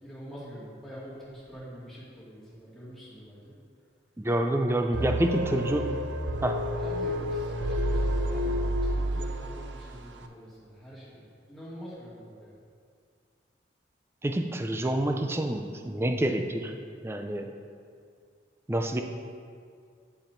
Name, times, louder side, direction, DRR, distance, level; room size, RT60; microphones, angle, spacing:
voice 1, 0.0-3.5 4.9-5.1 6.8-12.6, equal, ahead, -10 dB, 2.0 m, -45 dB
voice 2, 4.2-6.0 6.4-6.6 14.2-16.7 17.0-17.6 18.7-19.0, right 1 dB, 15° right, 5 dB, 0.4 m, -28 dB
sound 1, 4.9-9.9, equal, 70° right, 0.5 m, -29 dB
9.6 x 7.1 x 2.6 m, 2.2 s
head